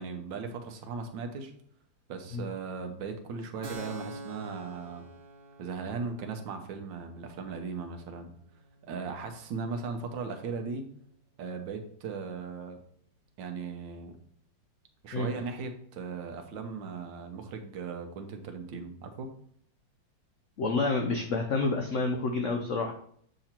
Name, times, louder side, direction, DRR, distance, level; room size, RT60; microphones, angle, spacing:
voice 1, 0.0-1.5 2.1-5.0 5.6-8.3 8.9-10.9 11.4-12.8 13.4-14.2 15.0-19.3, right 5 dB, 80° right, 5 dB, 1.5 m, -38 dB
Keyboard (musical), 3.6-10.9, right 2 dB, 55° right, 1.6 m, -48 dB
voice 2, 20.6-22.9, left 3 dB, 80° left, 4 dB, 0.6 m, -28 dB
7.8 x 2.9 x 4.3 m, 0.65 s
omnidirectional pair, 2.0 m